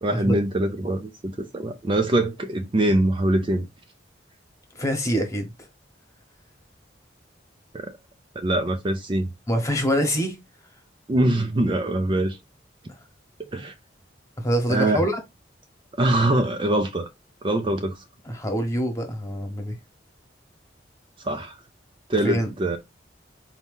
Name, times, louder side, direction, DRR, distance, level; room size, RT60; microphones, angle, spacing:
voice 1, 0.0-3.7 7.7-7.9 8.4-9.3 11.1-12.4 13.5-13.7 14.7-15.1 16.0-17.1 17.4-18.0 21.2-21.6 22.1-22.8, right 1 dB, 25° right, 0.4 m, -23 dB
voice 2, 4.7-5.5 9.5-10.4 14.4-15.2 18.3-19.7 22.2-22.5, equal, 15° left, 1.1 m, -25 dB
4.1 x 2.8 x 3.6 m
head